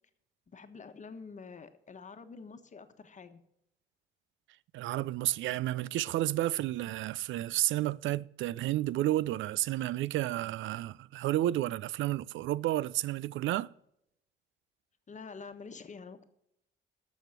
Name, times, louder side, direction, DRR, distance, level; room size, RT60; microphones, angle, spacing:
voice 1, 0.5-3.4 15.1-16.2, left 5 dB, 40° left, 1.3 m, -47 dB
voice 2, 4.7-13.7, right 14 dB, 75° right, 0.4 m, -31 dB
13.5 x 6.4 x 5.9 m
cardioid pair, 90°, 20 cm